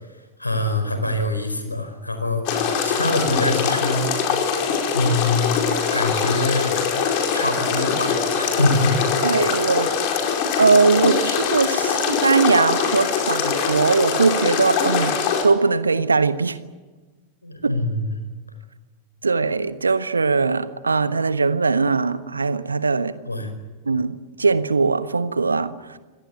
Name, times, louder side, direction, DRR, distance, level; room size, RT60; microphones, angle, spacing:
voice 1, 0.4-4.1 4.9-5.5 5.9-6.8 7.3-9.4 17.4-18.1 23.3-23.5, left 2 dB, 85° left, 8 dB, 4.7 m, -24 dB
sound 1, 2.5-15.4, left 6 dB, 45° left, 5.0 m, -23 dB
voice 2, 9.2-9.9 10.6-15.1 15.4-16.6 17.6-17.7 19.2-23.1 23.8-26.0, right 4 dB, 75° right, 13 dB, 1.3 m, -20 dB
26.0 x 18.0 x 9.4 m, 1.3 s
figure-of-eight pair, 90°, 0 cm